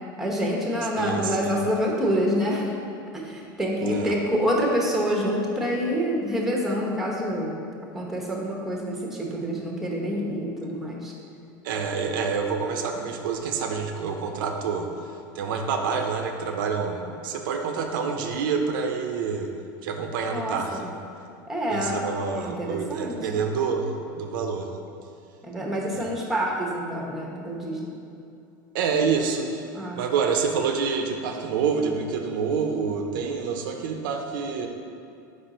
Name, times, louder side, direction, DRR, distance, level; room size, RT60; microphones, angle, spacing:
voice 1, 0.2-2.7 3.1-7.6 7.9-11.1 20.3-20.9 21.5-22.0 22.3-23.4 25.4-27.8 29.7-30.0, equal, 5° right, -2 dB, 1.0 m, -27 dB
voice 2, 1.0-1.6 3.8-4.2 11.6-14.9 15.3-19.5 19.8-20.9 21.7-24.7 25.9-26.1 28.7-34.7, right 5 dB, 80° right, 4 dB, 0.6 m, -27 dB
4.9 x 4.3 x 5.1 m, 2.6 s
supercardioid pair, 125°, 11 cm